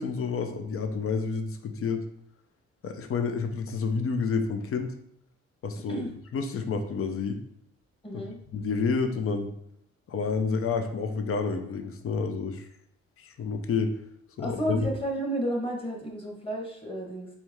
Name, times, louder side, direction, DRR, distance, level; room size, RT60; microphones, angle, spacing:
voice 1, 0.0-2.0 2.8-5.0 5.6-6.0 6.3-7.4 8.5-9.5 10.1-12.6 13.2-14.0 14.4-14.8, left 5 dB, 50° left, 8 dB, 0.7 m, -29 dB
voice 2, 8.0-8.4 14.4-17.3, right 1 dB, 20° left, 0 dB, 1.4 m, -32 dB
4.6 x 3.2 x 3.6 m, 0.72 s
cardioid pair, 90°, 30 cm